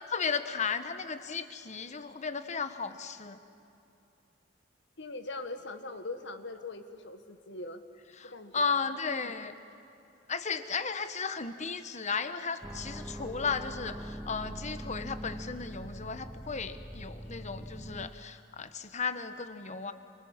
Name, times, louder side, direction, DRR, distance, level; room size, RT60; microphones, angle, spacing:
voice 1, 0.0-3.4 8.2-9.5 10.3-19.9, left 5 dB, 40° left, 10 dB, 1.2 m, -35 dB
voice 2, 5.0-7.8 8.2-8.8 9.2-9.3, left 2 dB, 65° left, 8 dB, 1.7 m, -41 dB
sound 1, 12.6-18.1, equal, 5° right, 0.6 m, -42 dB
29.0 x 26.5 x 7.4 m, 2.8 s
head